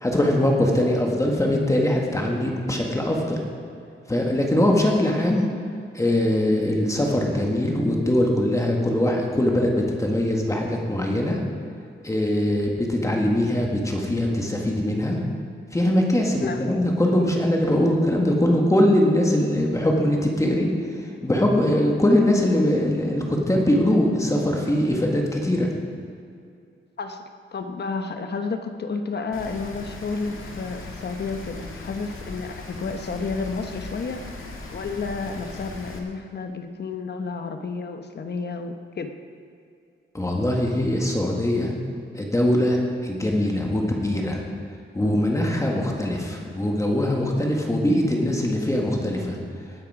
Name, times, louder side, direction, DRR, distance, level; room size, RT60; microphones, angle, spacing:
voice 1, 0.0-3.4 4.1-5.5 5.9-11.4 12.0-15.2 15.7-20.7 21.2-25.7 40.1-41.7 42.1-44.4 44.9-49.4, left 1 dB, 15° left, 0 dB, 1.8 m, -22 dB
voice 2, 27.5-34.4 34.7-39.1, left 4 dB, 55° left, 6 dB, 1.1 m, -31 dB
Rain, 29.3-36.0, left 3 dB, 80° left, 1.9 m, -38 dB
19.0 x 10.0 x 4.9 m, 2.4 s
wide cardioid pair, 160°, 21 cm